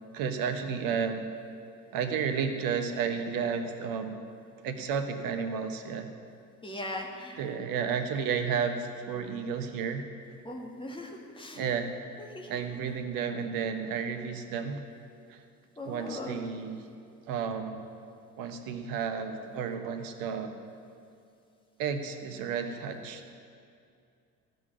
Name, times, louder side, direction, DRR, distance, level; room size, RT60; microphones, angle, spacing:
voice 1, 0.1-1.3 1.9-4.2 4.6-6.1 7.3-10.1 11.5-11.9 12.5-14.8 15.3-15.4 15.8-16.8 17.3-17.8 18.4-20.5 21.8-23.2, right 6 dB, 45° right, 7 dB, 1.2 m, -32 dB
voice 2, 6.6-7.4 10.4-11.7 12.2-12.5 12.8-12.9 15.8-16.4, left 1 dB, 10° left, 1 dB, 1.8 m, -39 dB
15.0 x 6.1 x 9.3 m, 2.5 s
figure-of-eight pair, 65°, 46 cm